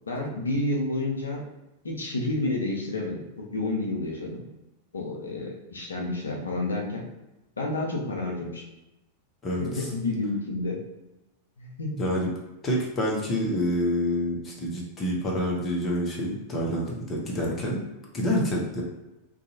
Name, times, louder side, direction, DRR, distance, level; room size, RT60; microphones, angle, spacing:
voice 1, 0.1-1.4 1.8-4.5 4.9-7.0 7.6-8.6 9.6-10.8 11.6-11.9, left 2 dB, 75° left, 0 dB, 0.6 m, -30 dB
voice 2, 9.4-9.9 12.0-12.3 12.6-17.8 18.1-18.8, equal, 25° left, -3 dB, 0.8 m, -27 dB
2.6 x 2.3 x 2.8 m, 0.98 s
figure-of-eight pair, 90°, 0 cm